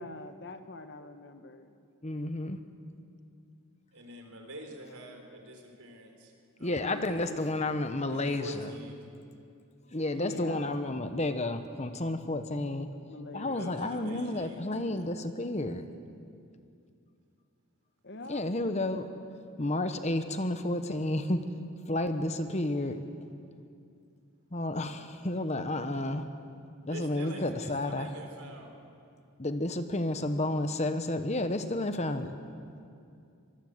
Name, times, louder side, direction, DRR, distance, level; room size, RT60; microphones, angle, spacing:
voice 1, 0.0-1.7 6.8-7.5 10.1-10.8 13.1-14.2 18.0-18.5, left 2 dB, 50° left, 8 dB, 1.3 m, -44 dB
voice 2, 2.0-2.6 6.6-8.7 9.9-12.9 13.3-15.8 18.2-19.2 19.6-21.4 21.9-23.0 24.5-26.2 26.8-28.1 29.4-32.3, left 1 dB, 30° left, 9 dB, 1.1 m, -31 dB
voice 3, 3.9-6.3 6.6-7.2 8.1-8.9 13.3-14.7 26.9-28.7, right 1 dB, 75° right, 3 dB, 4.2 m, -45 dB
24.5 x 20.5 x 8.0 m, 2.5 s
head